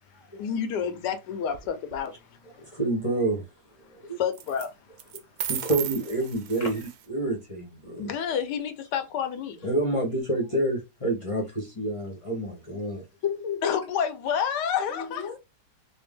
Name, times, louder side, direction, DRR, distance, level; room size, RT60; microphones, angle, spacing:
voice 1, 0.4-2.6 4.1-4.7 8.0-9.6 13.6-15.3, left 7 dB, 80° left, 1.3 m, -29 dB
sound 1, 1.5-2.0 4.3-4.7 5.0-7.0, right 10 dB, 85° right, 1.2 m, -35 dB
voice 2, 2.7-3.4 3.9-4.2 5.5-6.8 7.1-8.1 9.6-13.0, right 2 dB, 30° left, 0.7 m, -28 dB
voice 3, 13.2-13.8 14.9-15.4, left 8 dB, 60° left, 0.9 m, -32 dB
4.2 x 2.1 x 3.5 m
omnidirectional pair, 1.8 m